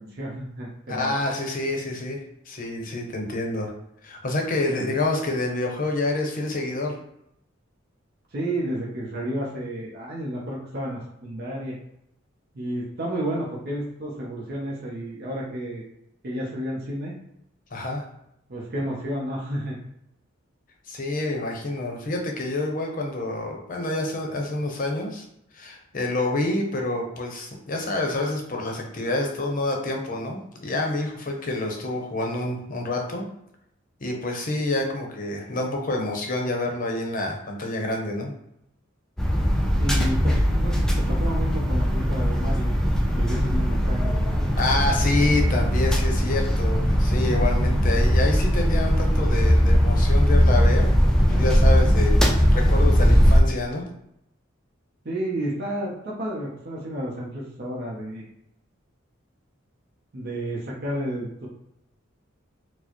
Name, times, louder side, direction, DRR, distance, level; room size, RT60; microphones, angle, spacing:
voice 1, 0.0-1.1 4.7-4.9 8.3-11.8 12.5-15.8 16.2-17.2 18.5-19.8 39.8-42.7 43.1-44.1 55.0-58.2 60.1-61.5, right 1 dB, 50° right, -3 dB, 0.7 m, -31 dB
voice 2, 0.9-2.2 2.5-3.7 4.0-7.0 17.7-18.1 20.9-25.2 25.5-33.2 34.0-38.3 44.6-52.2 52.5-53.9, left 2 dB, 40° left, 2 dB, 0.6 m, -27 dB
sound 1, 39.2-53.4, equal, 5° left, 0.4 m, -20 dB
4.5 x 2.0 x 2.9 m, 0.78 s
head